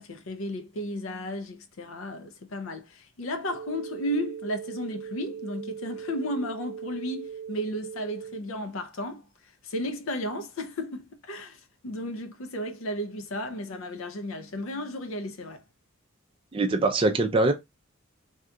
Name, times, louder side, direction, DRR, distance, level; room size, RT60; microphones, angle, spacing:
voice 1, 0.0-15.6, equal, 70° left, 0.5 m, -34 dB
sound 1, 3.4-8.4, right 7 dB, 75° right, 0.7 m, -39 dB
voice 2, 16.5-17.5, right 2 dB, 25° right, 0.4 m, -23 dB
2.8 x 2.3 x 3.6 m
head